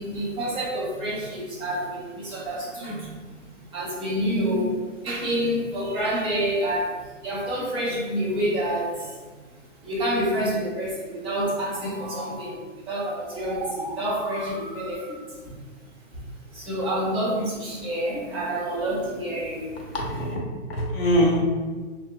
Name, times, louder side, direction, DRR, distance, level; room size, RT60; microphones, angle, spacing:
voice 1, 0.0-15.6 16.1-16.2 16.5-19.9, equal, 15° right, -7 dB, 0.6 m, -28 dB
voice 2, 19.9-21.4, equal, 55° left, -1 dB, 0.7 m, -23 dB
3.4 x 2.0 x 2.4 m, 1.4 s
figure-of-eight pair, 120°, 38 cm